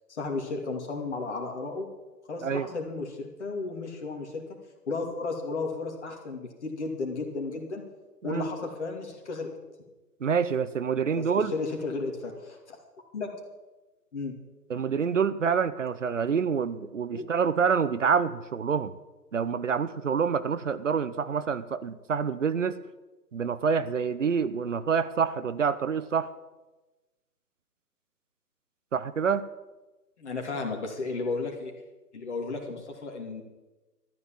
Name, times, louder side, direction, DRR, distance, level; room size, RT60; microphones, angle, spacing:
voice 1, 0.1-1.9 2.3-4.4 4.9-7.8 8.2-9.5 11.1-12.8 13.1-13.3 14.1-14.3 17.1-17.2 30.2-31.7 32.1-33.4, left 3 dB, 45° left, 3 dB, 2.6 m, -34 dB
voice 2, 10.2-11.5 14.7-18.9 19.3-22.8 23.3-26.3 28.9-29.5, right 6 dB, 50° right, 14 dB, 0.8 m, -27 dB
13.5 x 9.9 x 7.3 m, 1.1 s
figure-of-eight pair, 140°, 49 cm